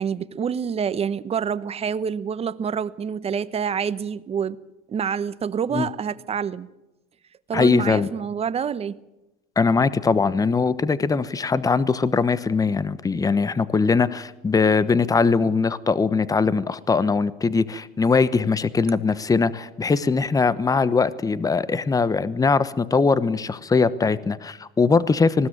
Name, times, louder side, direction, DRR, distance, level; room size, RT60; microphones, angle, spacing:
voice 1, 0.0-4.6 4.9-6.7 7.5-9.0, right 7 dB, 30° right, 15 dB, 1.0 m, -27 dB
voice 2, 7.5-8.1 9.6-25.5, left 4 dB, 20° left, 16 dB, 1.0 m, -21 dB
20.0 x 16.0 x 8.9 m, 0.96 s
supercardioid pair, 100°, 19 cm